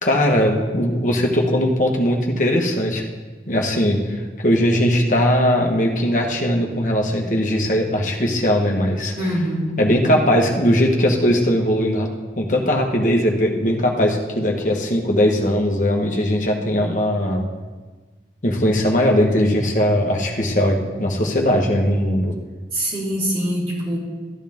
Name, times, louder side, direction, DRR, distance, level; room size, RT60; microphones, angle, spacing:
voice 1, 0.0-3.0 3.5-9.1 9.8-12.1 12.4-17.4 18.4-22.3, equal, 45° left, 1 dB, 1.3 m, -19 dB
voice 2, 9.2-9.8 22.7-24.0, equal, 35° right, -7 dB, 3.7 m, -23 dB
13.5 x 10.0 x 3.6 m, 1.3 s
head